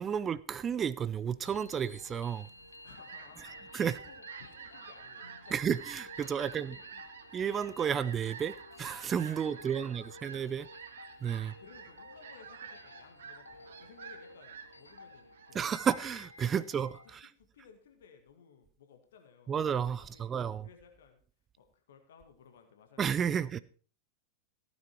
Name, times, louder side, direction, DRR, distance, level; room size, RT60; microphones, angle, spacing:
voice 1, 0.0-2.5 3.7-4.0 5.5-6.8 7.3-10.7 11.2-11.5 15.5-17.3 19.5-20.7 23.0-23.6, right 8 dB, 25° right, 0.5 m, -32 dB
sound 1, 1.2-17.2, left 3 dB, 75° left, 0.6 m, -53 dB
Fowl, 2.5-16.4, right 7 dB, 60° right, 1.5 m, -50 dB
voice 2, 2.8-3.7 4.0-5.8 6.4-7.0 9.3-10.3 11.4-15.8 16.6-16.7 17.2-19.6 20.0-21.2 21.6-23.1, left 6 dB, 60° left, 1.9 m, -58 dB
15.5 x 9.4 x 4.5 m
figure-of-eight pair, 90°, 0 cm